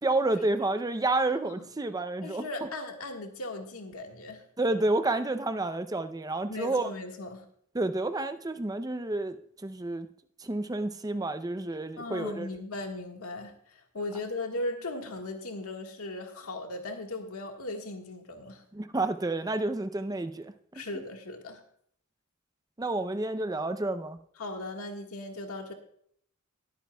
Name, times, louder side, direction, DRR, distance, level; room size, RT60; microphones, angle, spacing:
voice 1, 0.0-2.4 4.6-6.9 7.7-9.4 9.6-10.1 10.4-12.5 18.7-20.8 22.8-24.2, right 2 dB, 15° right, 10 dB, 0.5 m, -30 dB
voice 2, 1.1-1.5 2.2-4.4 6.5-7.4 12.0-18.6 20.7-21.6 24.4-25.7, left 2 dB, 90° left, 3 dB, 1.6 m, -38 dB
20.0 x 8.5 x 2.3 m, 0.65 s
head